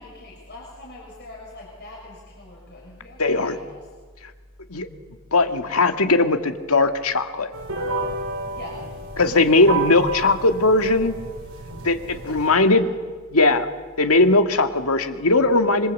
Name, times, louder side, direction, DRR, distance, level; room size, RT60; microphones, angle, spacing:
voice 1, 0.0-3.9 8.5-8.9 9.5-9.8 12.1-12.9 14.6-14.8, left 2 dB, 50° left, -2 dB, 6.5 m, -42 dB
voice 2, 3.2-3.6 4.7-4.9 5.3-7.5 9.2-11.2 11.8-12.9 13.3-13.7 14.0-15.9, left 2 dB, 85° left, 7 dB, 2.0 m, -19 dB
sound 1, 7.5-12.5, right 3 dB, 85° right, 6.4 m, -31 dB
26.0 x 26.0 x 8.4 m, 1.4 s
head